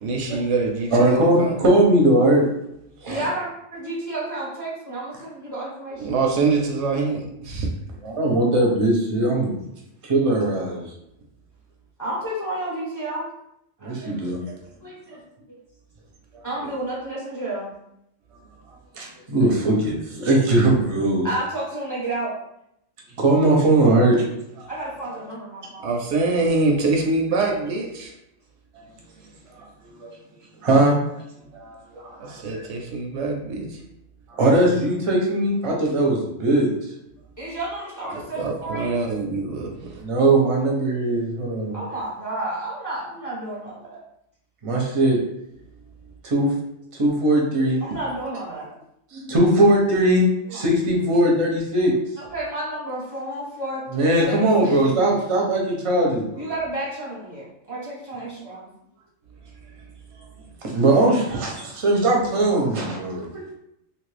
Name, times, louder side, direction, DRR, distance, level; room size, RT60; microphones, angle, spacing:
voice 1, 0.0-1.6 6.0-7.7 25.8-28.1 32.2-33.8 38.1-40.0, right 3 dB, 70° right, 1 dB, 0.9 m, -24 dB
voice 2, 0.9-2.4 3.0-3.2 8.0-9.5 10.0-10.9 13.8-14.4 16.3-16.4 18.9-21.3 23.2-24.2 24.6-24.7 29.6-29.7 30.0-30.1 30.6-30.9 31.5-32.7 34.3-36.7 40.0-41.8 44.6-45.2 46.2-46.5 47.0-47.8 49.1-51.9 53.9-56.5 60.6-63.5, right 1 dB, 35° right, -2 dB, 0.6 m, -20 dB
voice 3, 3.1-6.2 12.0-13.2 13.8-14.5 14.8-15.2 16.4-17.7 21.2-22.3 24.7-25.9 37.4-38.9 41.7-44.0 47.8-48.7 50.5-50.6 52.2-55.0 56.4-58.7, right 1 dB, 20° left, -6 dB, 0.7 m, -31 dB
2.9 x 2.5 x 3.3 m, 0.79 s
omnidirectional pair, 1.4 m